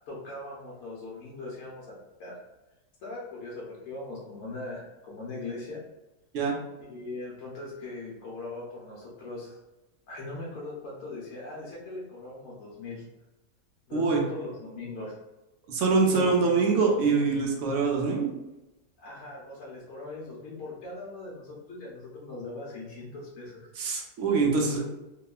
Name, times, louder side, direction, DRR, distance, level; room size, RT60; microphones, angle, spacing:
voice 1, 0.1-1.9 2.2-2.4 3.0-5.8 6.8-9.6 10.1-13.0 13.9-15.1 16.0-16.5 19.0-23.7, left 2 dB, 65° left, -5 dB, 1.0 m, -40 dB
voice 2, 13.9-14.2 15.7-18.3 23.8-24.8, right 4 dB, 65° right, 0 dB, 0.8 m, -24 dB
2.9 x 2.1 x 2.3 m, 1.0 s
omnidirectional pair, 1.6 m